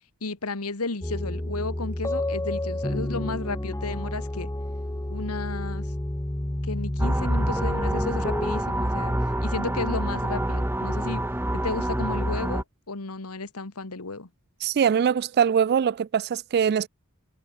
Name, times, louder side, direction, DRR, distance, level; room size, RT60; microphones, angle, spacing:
voice 1, 0.2-4.5 5.1-5.9 6.6-9.1 9.4-11.2 11.5-14.3, left 3 dB, 75° left, 1.7 m, -33 dB
sound 1, 1.0-8.6, left 1 dB, 15° left, 0.7 m, -30 dB
sound 2, 7.0-12.6, right 1 dB, 10° right, 1.6 m, -27 dB
voice 2, 14.6-16.9, right 7 dB, 45° right, 0.3 m, -22 dB
head